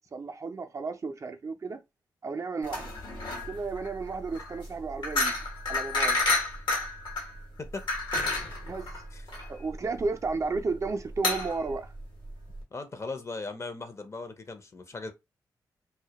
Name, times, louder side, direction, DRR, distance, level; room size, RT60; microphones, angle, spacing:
voice 1, 0.1-1.8 2.2-2.9 3.5-5.4 5.7-6.2 8.6-8.8 9.5-11.9, right 4 dB, 40° right, 0.3 m, -33 dB
sound 1, 2.6-12.6, left 2 dB, 75° left, 0.9 m, -31 dB
voice 2, 12.7-15.1, left 3 dB, 35° left, 0.5 m, -38 dB
2.1 x 2.1 x 2.8 m
cardioid pair, 60°, 8 cm